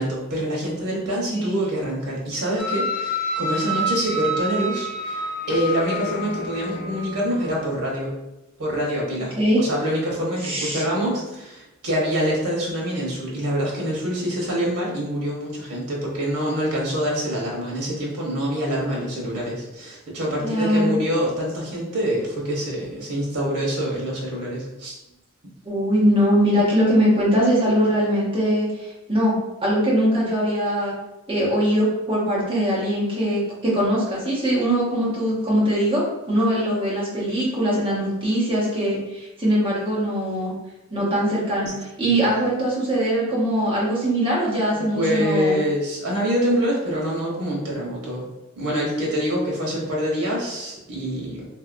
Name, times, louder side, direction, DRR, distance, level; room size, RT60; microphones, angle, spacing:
voice 1, 0.0-8.1 8.6-24.9 41.6-41.7 42.0-42.2 44.7-48.3 48.6-51.5, equal, 90° right, -3 dB, 1.0 m, -25 dB
voice 2, 1.1-1.5 9.4-9.6 10.4-10.8 20.4-21.0 25.6-29.4 29.6-30.9 31.3-40.5 40.9-45.6, equal, 25° right, -6 dB, 0.9 m, -21 dB
sound 1, 2.6-7.6, equal, 45° left, 0.4 m, -28 dB
3.1 x 2.8 x 2.5 m, 0.95 s
head